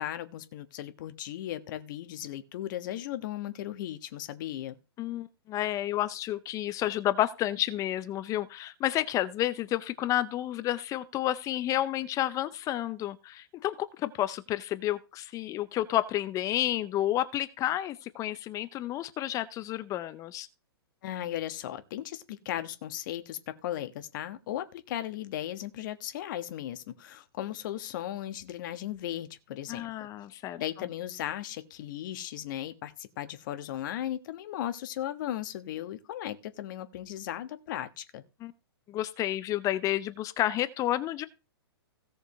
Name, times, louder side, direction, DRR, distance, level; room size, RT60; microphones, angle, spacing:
voice 1, 0.0-4.8 21.0-30.1 30.6-38.2, left 12 dB, 50° left, 1.4 m, -36 dB
voice 2, 5.0-20.5 29.7-30.6 38.4-38.5 38.9-41.3, left 13 dB, 25° left, 0.7 m, -30 dB
17.0 x 6.6 x 3.2 m
hypercardioid pair, 125°, 13 cm